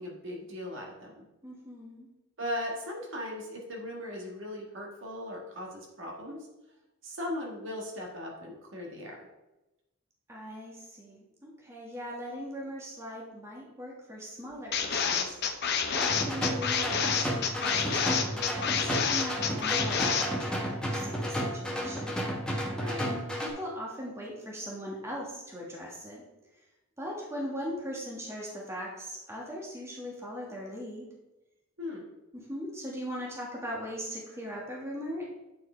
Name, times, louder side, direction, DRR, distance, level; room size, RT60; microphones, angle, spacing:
voice 1, 0.0-1.2 2.4-6.4 7.0-9.2 22.8-23.1 31.8-32.0, left 1 dB, 60° right, -1 dB, 1.6 m, -38 dB
voice 2, 1.4-2.1 10.3-15.4 15.9-18.4 18.8-22.2 23.0-26.2 27.0-31.1 32.3-35.3, equal, 15° right, -3 dB, 1.4 m, -40 dB
sound 1, 14.7-20.2, left 7 dB, 50° left, 0.7 m, -28 dB
sound 2, 15.9-23.5, equal, 5° left, 1.0 m, -32 dB
8.5 x 4.6 x 4.4 m, 0.99 s
head